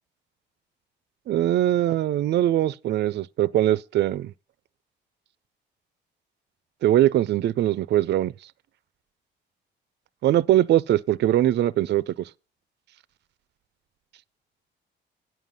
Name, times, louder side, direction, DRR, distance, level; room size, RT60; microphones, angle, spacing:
voice 1, 1.3-4.3 6.8-8.3 10.2-12.3, right 13 dB, 60° right, 0.4 m, -21 dB
9.3 x 7.9 x 5.4 m
cardioid pair, 90°, 20 cm